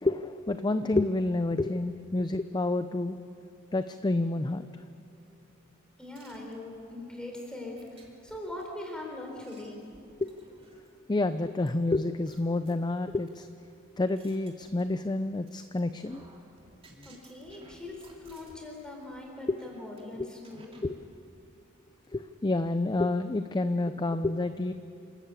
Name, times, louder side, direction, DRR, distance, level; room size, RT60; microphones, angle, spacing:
voice 1, 0.0-3.2 3.7-4.6 10.2-10.3 11.1-13.5 14.0-16.2 20.2-20.3 20.8-21.0 22.1-24.7, left 2 dB, 20° left, 10 dB, 0.5 m, -29 dB
voice 2, 6.0-9.8 17.0-20.8, left 2 dB, 5° left, 0 dB, 4.1 m, -41 dB
sound 1, 6.1-6.9 7.8-8.6 9.2-11.0 11.7-11.8 12.3-13.3 13.8-15.2 15.5-15.8 16.0-18.7 19.0-19.2 19.6-20.0 20.4-21.1, right 2 dB, 25° right, 2.9 m, -57 dB
28.0 x 13.0 x 8.5 m, 2.6 s
head